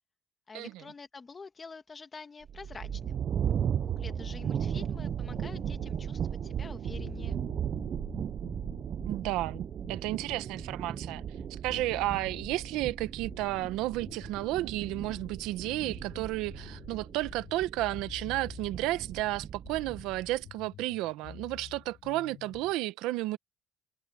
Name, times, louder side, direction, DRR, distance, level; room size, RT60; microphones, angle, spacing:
voice 1, 0.5-3.2 4.0-7.4, left 4 dB, 20° left, 1.8 m, -47 dB
sound 1, 2.4-20.5, right 9 dB, 35° right, 0.4 m, -36 dB
sound 2, 2.8-22.7, left 9 dB, 40° left, 1.8 m, -50 dB
voice 2, 9.1-11.2 11.5-23.4, right 17 dB, 80° right, 0.9 m, -32 dB
cardioid pair, 165°, 0 cm